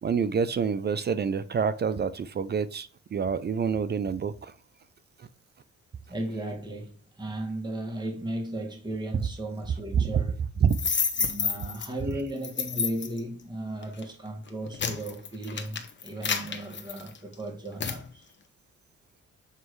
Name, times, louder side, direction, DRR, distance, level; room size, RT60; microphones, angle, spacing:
voice 1, 0.0-4.5 9.1-9.2 9.9-10.2 10.6-10.8, right 6 dB, 35° right, 0.5 m, -27 dB
voice 2, 6.1-10.4 11.2-18.3, right 1 dB, 15° right, 1.9 m, -35 dB
sound 1, 10.7-11.9 12.4-13.2 13.8-14.0 14.5-17.3 17.8-18.0, left 6 dB, 40° left, 1.2 m, -29 dB
7.6 x 3.1 x 4.6 m
cardioid pair, 90°, 30 cm